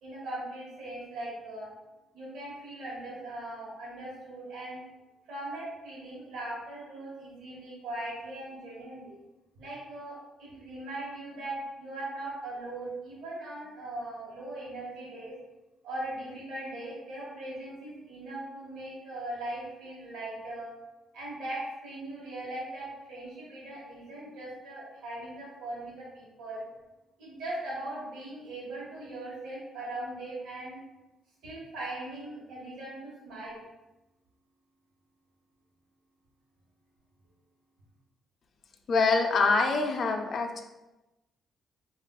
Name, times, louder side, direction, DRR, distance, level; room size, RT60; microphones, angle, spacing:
voice 1, 0.0-1.7 2.1-4.8 5.3-9.2 9.6-15.3 15.8-20.7 21.1-26.6 27.2-30.8 31.4-33.6, right 1 dB, 85° right, -7 dB, 1.0 m, -39 dB
voice 2, 38.9-40.6, left 4 dB, 55° left, 5 dB, 0.4 m, -25 dB
3.5 x 2.4 x 2.3 m, 1.0 s
cardioid pair, 90°, 0 cm